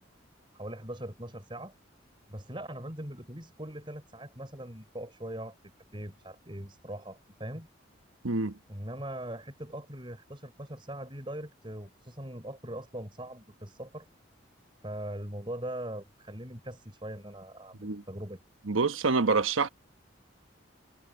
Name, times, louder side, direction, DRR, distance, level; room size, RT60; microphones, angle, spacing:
voice 1, 0.5-1.7 2.3-5.5 5.9-7.7 8.7-14.0 14.8-18.4, right 1 dB, 25° right, 4.9 m, -41 dB
voice 2, 18.7-19.7, right 4 dB, 90° right, 1.2 m, -26 dB
head